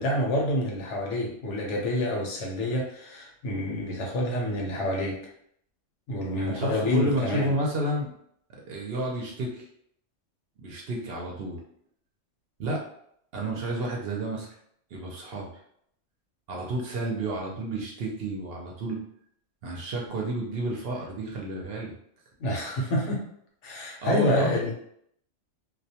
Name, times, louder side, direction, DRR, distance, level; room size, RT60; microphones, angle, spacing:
voice 1, 0.0-5.2 6.1-7.5 22.4-23.2 23.6-24.7, left 1 dB, 75° left, -1 dB, 1.0 m, -28 dB
voice 2, 6.4-8.1 8.7-9.7 10.6-11.6 12.6-12.8 13.3-14.5 14.9-15.5 16.5-19.0 19.6-21.9 24.0-24.6, right 1 dB, 65° right, -1 dB, 0.7 m, -30 dB
2.4 x 2.2 x 2.7 m, 0.69 s
omnidirectional pair, 1.2 m